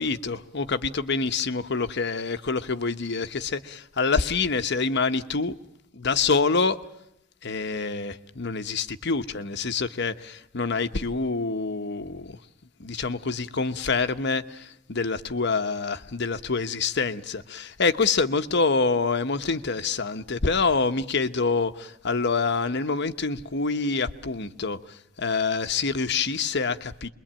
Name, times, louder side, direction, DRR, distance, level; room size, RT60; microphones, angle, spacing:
voice 1, 0.0-5.5 5.9-6.8 7.4-12.4 12.8-27.1, left 4 dB, 65° left, 1.1 m, -26 dB
26.5 x 22.0 x 8.9 m
head